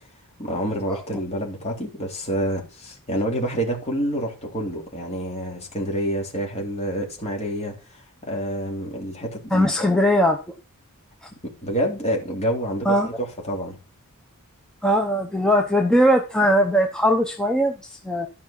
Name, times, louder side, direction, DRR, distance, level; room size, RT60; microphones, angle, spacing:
voice 1, 0.4-7.7 8.3-9.9 11.4-13.7, equal, 30° left, 3.3 m, -28 dB
voice 2, 9.5-10.4 11.2-11.3 12.8-13.1 14.8-18.3, equal, 5° left, 0.9 m, -20 dB
13.0 x 5.5 x 5.8 m
head